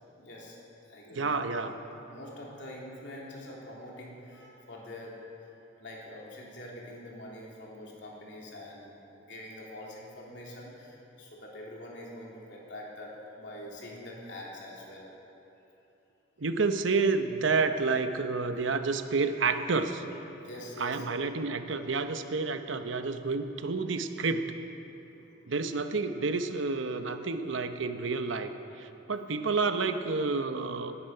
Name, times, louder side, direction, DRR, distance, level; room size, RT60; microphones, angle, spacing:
voice 1, 0.2-0.6 0.9-1.4 1.8-5.5 5.8-15.1 20.3-21.0 24.8-25.2, left 1 dB, 65° left, -4 dB, 3.3 m, -45 dB
voice 2, 1.1-1.7 16.4-20.0 20.8-24.5 25.5-28.5 28.8-31.0, right 4 dB, 80° right, 8 dB, 0.9 m, -29 dB
18.5 x 11.5 x 5.6 m, 3.0 s
head